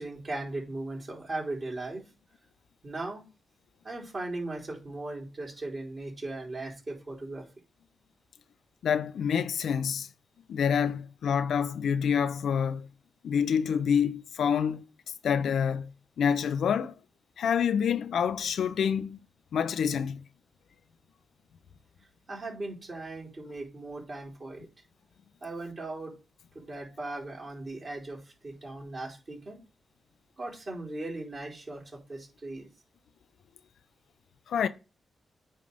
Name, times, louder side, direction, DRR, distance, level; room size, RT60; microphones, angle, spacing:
voice 1, 0.0-2.0 2.8-3.2 3.8-7.4 22.3-24.7 25.4-26.1 26.5-29.6 30.4-31.8 32.1-32.7, right 2 dB, 45° right, 3.9 m, -38 dB
voice 2, 8.8-10.1 10.5-12.9 13.2-14.8 15.2-15.9 16.2-16.9 17.4-19.3 19.5-20.2 34.5-34.7, left 7 dB, 80° left, 0.5 m, -27 dB
8.8 x 3.3 x 5.3 m
cardioid pair, 55°, 0 cm